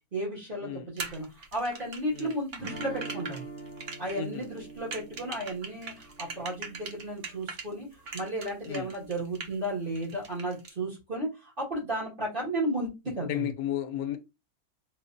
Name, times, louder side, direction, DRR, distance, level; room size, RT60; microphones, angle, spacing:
voice 1, 0.1-3.4 4.0-7.9 8.1-13.5, right 1 dB, 35° right, 1.8 m, -34 dB
sound 1, 1.0-7.7 8.1-9.7 10.0-10.7, right 4 dB, 50° right, 0.8 m, -40 dB
sound 2, 2.6-7.5, right 3 dB, 65° right, 1.9 m, -44 dB
voice 2, 4.1-4.4 8.7-8.9 13.3-14.2, left 11 dB, 75° left, 1.1 m, -33 dB
4.5 x 2.6 x 2.5 m
omnidirectional pair, 1.6 m